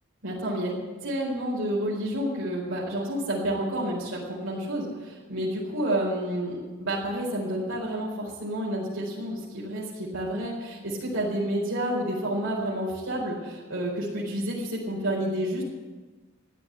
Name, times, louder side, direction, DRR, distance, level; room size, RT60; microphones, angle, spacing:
voice 1, 0.2-15.6, right 1 dB, 75° right, -6 dB, 4.3 m, -30 dB
14.5 x 10.5 x 8.8 m, 1.3 s
head